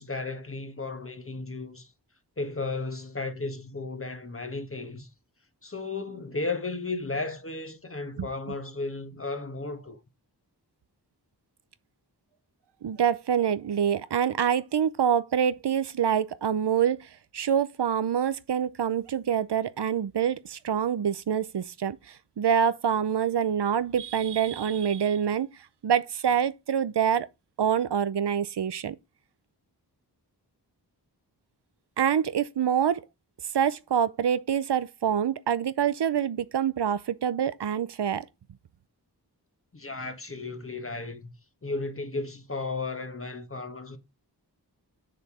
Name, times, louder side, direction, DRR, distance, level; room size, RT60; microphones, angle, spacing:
voice 1, 0.0-1.9 2.4-5.1 5.6-10.0 39.7-41.3 41.6-44.0, left 3 dB, 35° left, 1.6 m, -34 dB
voice 2, 12.8-25.5 25.8-27.3 27.6-29.0 32.0-33.0 33.5-38.3, right 8 dB, 90° right, 0.7 m, -26 dB
6.7 x 6.6 x 4.8 m
wide cardioid pair, 75°, 39 cm